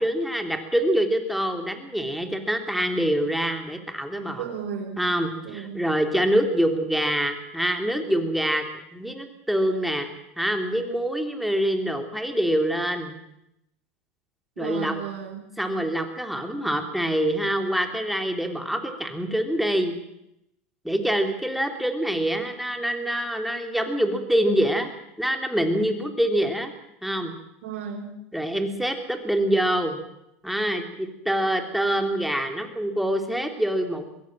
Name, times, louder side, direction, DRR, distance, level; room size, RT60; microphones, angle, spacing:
voice 1, 0.0-4.4 5.0-8.6 8.9-10.1 10.4-13.1 14.6-15.0 15.6-19.9 20.8-24.9 25.2-26.7 27.0-27.3 28.3-30.0 30.4-34.1, equal, ahead, 5 dB, 3.3 m, -25 dB
voice 2, 4.4-5.0 5.4-5.8 14.6-15.4 27.6-28.1, right 7 dB, 75° right, 0 dB, 4.6 m, -34 dB
22.5 x 16.5 x 7.6 m, 0.83 s
supercardioid pair, 110°, 7 cm